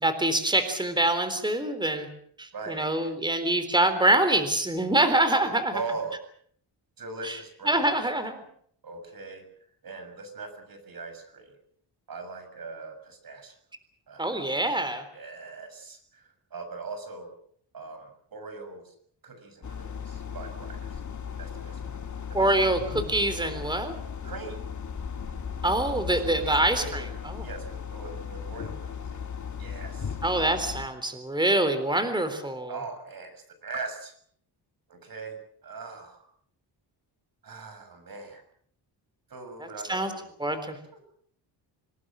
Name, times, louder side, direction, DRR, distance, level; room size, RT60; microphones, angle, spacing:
voice 1, 0.0-2.1 2.4-5.7 7.2-7.4 7.7-8.4 14.2-15.0 22.3-24.0 25.6-27.5 30.2-32.8 39.9-40.1 40.4-40.8, right 1 dB, 10° right, 10 dB, 3.7 m, -25 dB
voice 2, 2.5-3.2 5.4-6.2 7.0-7.9 8.8-9.5 9.8-11.6 12.1-13.5 14.1-14.5 15.1-17.3 17.7-18.9 19.2-21.0 21.4-21.9 22.3-22.5 24.2-24.6 26.1-27.1 27.4-29.3 29.6-30.2 32.7-34.2 34.9-36.2 37.4-38.4 39.3-40.3 40.9-41.0, right 4 dB, 50° right, 8 dB, 6.8 m, -40 dB
sound 1, 19.6-30.9, left 7 dB, 40° left, 2.3 m, -36 dB
27.0 x 19.0 x 7.6 m, 0.62 s
wide cardioid pair, 120°, 44 cm